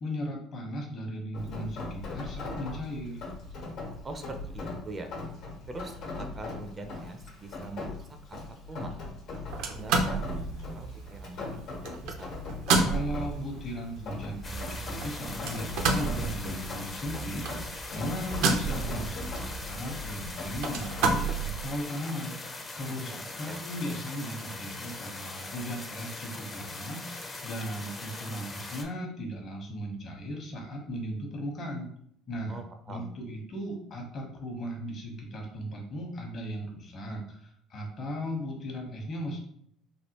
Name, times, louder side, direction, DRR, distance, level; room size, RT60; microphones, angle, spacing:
voice 1, 0.0-3.3 12.8-22.4 22.7-31.9 32.3-32.6 32.9-39.4, equal, 45° left, 1 dB, 1.0 m, -37 dB
Rain, 1.3-21.1, left 3 dB, 65° left, 1.1 m, -40 dB
voice 2, 4.0-5.1 5.7-9.0 9.3-10.3 10.6-12.3 23.0-23.2 23.5-23.6 32.5-33.1, right 3 dB, 25° right, 5 dB, 0.4 m, -43 dB
sound 1, 9.5-21.8, right 4 dB, 75° right, 0.5 m, -32 dB
sound 2, 14.4-28.8, left 2 dB, 25° left, 0.6 m, -41 dB
3.3 x 2.4 x 2.9 m, 0.68 s
supercardioid pair, 95°, 0 cm